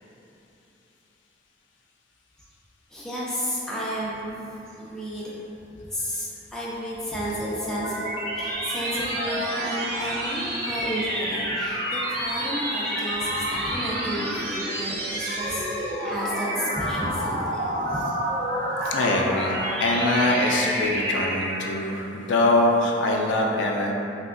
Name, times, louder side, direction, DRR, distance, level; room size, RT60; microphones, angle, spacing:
voice 1, 2.9-5.4 5.9-8.0 8.3-18.0, equal, 5° left, -8 dB, 0.4 m, -32 dB
sound 1, 7.2-21.9, right 1 dB, 55° right, 0.5 m, -29 dB
voice 2, 18.8-23.9, left 2 dB, 70° left, -1 dB, 0.3 m, -23 dB
3.3 x 2.9 x 2.4 m, 3.0 s
head